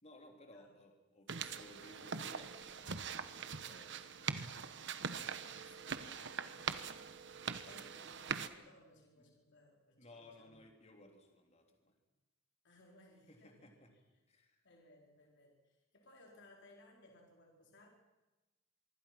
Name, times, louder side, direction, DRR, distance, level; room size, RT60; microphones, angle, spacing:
voice 1, 0.0-4.8 6.8-7.9 9.2-9.3 10.0-11.9 13.3-14.0 14.3-14.6, left 1 dB, 30° left, 3 dB, 3.4 m, -60 dB
sound 1, 1.3-8.5, right 6 dB, 60° right, 1.3 m, -42 dB
voice 2, 5.4-6.6 7.6-10.6 12.6-13.7 14.6-17.9, left 1 dB, 60° left, 1 dB, 4.5 m, -63 dB
25.0 x 24.0 x 5.9 m, 1.1 s
head